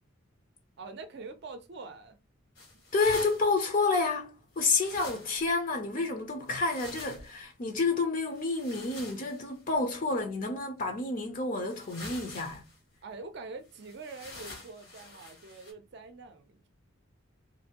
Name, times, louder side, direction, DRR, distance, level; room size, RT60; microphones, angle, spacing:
voice 1, 0.8-2.2 2.7-2.8 13.0-16.7, right 3 dB, 55° right, 0.5 m, -45 dB
sound 1, 2.6-3.5 4.6-5.5 6.5-7.4 8.4-9.4 10.6-10.7 11.6-12.8 13.7-15.7, left 2 dB, 85° left, 1.1 m, -46 dB
voice 2, 2.9-12.6, left 3 dB, 40° left, 0.5 m, -29 dB
2.6 x 2.6 x 2.8 m
head